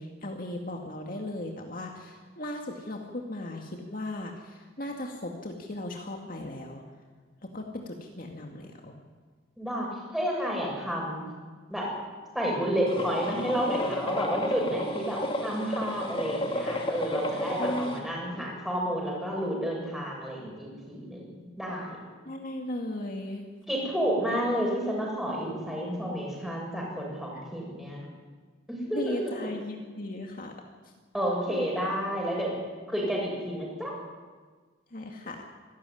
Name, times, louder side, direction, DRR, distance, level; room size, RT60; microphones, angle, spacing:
voice 1, 0.0-6.8 7.4-8.9 17.6-18.5 22.3-23.4 28.9-30.5 34.9-35.4, left 1 dB, 45° left, 2 dB, 2.1 m, -37 dB
voice 2, 9.6-11.2 11.7-11.9 12.3-21.9 23.7-28.1 28.7-29.5 31.1-32.5 32.9-33.9, equal, ahead, -2 dB, 7.3 m, -30 dB
sound 1, 12.9-18.0, left 1 dB, 30° left, 2.7 m, -32 dB
25.5 x 14.0 x 9.9 m, 1.5 s
head